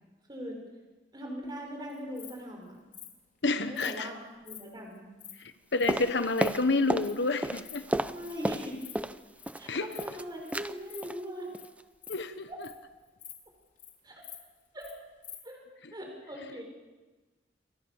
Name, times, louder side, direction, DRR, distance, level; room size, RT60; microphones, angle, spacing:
voice 1, 0.3-0.6 1.1-2.8 3.7-5.0 8.1-8.8 9.5-11.5 12.5-12.6 14.0-14.2 14.7-14.9 15.4-15.6 15.9-16.6, equal, 25° right, 1 dB, 5.9 m, -40 dB
Insect, 1.9-2.3 2.9-3.1 3.8-3.9 4.4-4.6 5.0-5.3 5.8-5.9 6.2-6.5 7.0-7.2 7.5-7.8 8.0-8.3 8.7-8.9 9.2-9.5 9.9-10.1 10.5-10.6 10.9-11.0 11.4-11.7 11.9-12.8 13.2-13.3 13.6-13.9 14.2-14.9 15.2-15.4, left 11 dB, 50° left, 4.6 m, -46 dB
voice 2, 3.4-4.1 5.4-7.8 9.7-9.9 12.1-12.5, left 3 dB, 75° left, 10 dB, 1.2 m, -29 dB
sound 1, 5.9-7.1 7.4-9.2 9.5-10.2 10.5-10.7 11.0-11.2 11.5-11.8 12.1-12.2, right 1 dB, 10° right, 0.7 m, -32 dB
28.5 x 22.0 x 7.1 m, 1.2 s
head